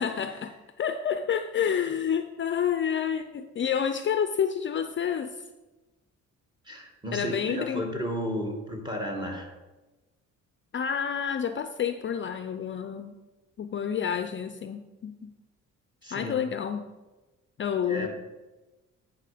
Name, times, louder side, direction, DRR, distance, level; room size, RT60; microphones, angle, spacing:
voice 1, 0.0-5.4 7.1-7.8 10.7-13.1 13.6-15.3 16.1-16.9 17.6-18.1, left 8 dB, 40° left, 9 dB, 0.5 m, -29 dB
voice 2, 6.7-9.5 16.0-16.3 17.8-18.1, equal, 15° right, 2 dB, 2.1 m, -33 dB
10.0 x 5.5 x 5.1 m, 1.1 s
cardioid pair, 90°, 30 cm